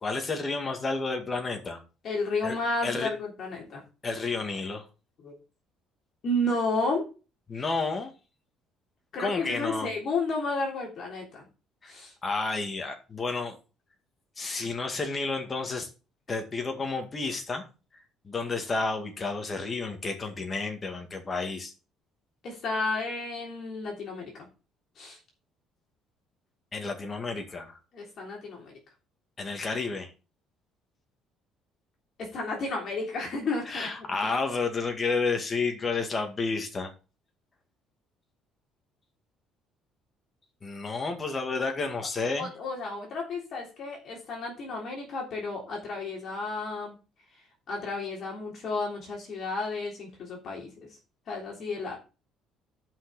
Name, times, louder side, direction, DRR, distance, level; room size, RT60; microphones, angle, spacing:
voice 1, 0.0-1.8 2.4-2.6 2.8-3.1 4.0-4.9 7.5-8.1 9.2-9.9 11.8-11.9 12.2-13.6 14.4-15.9 16.3-17.7 17.9-21.7 26.7-27.8 29.4-30.1 33.7-36.9 40.6-42.5, left 3 dB, 20° left, 1.9 m, -31 dB
voice 2, 2.0-3.8 5.2-5.3 6.2-7.0 9.1-11.5 11.9-12.1 22.4-24.3 25.0-25.2 27.9-28.8 32.2-33.9 42.4-47.0 47.7-50.9 51.3-52.0, left 2 dB, 45° left, 3.4 m, -32 dB
11.0 x 5.7 x 4.1 m
cardioid pair, 150°, 0 cm